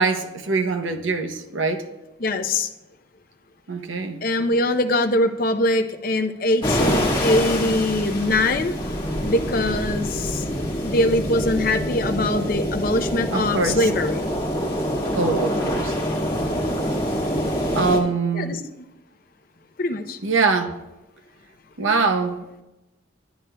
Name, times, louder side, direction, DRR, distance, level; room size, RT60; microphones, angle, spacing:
voice 1, 0.0-1.9 3.7-4.2 13.3-13.8 15.2-15.9 17.7-18.6 20.2-20.8 21.8-22.5, right 4 dB, 80° right, 0.7 m, -23 dB
voice 2, 2.2-2.7 4.2-8.8 9.3-10.4 10.8-14.3 18.3-18.6 19.8-20.2, left 1 dB, 45° left, 0.5 m, -22 dB
sound 1, 6.6-18.0, equal, 25° left, 1.7 m, -25 dB
11.0 x 9.0 x 2.2 m
head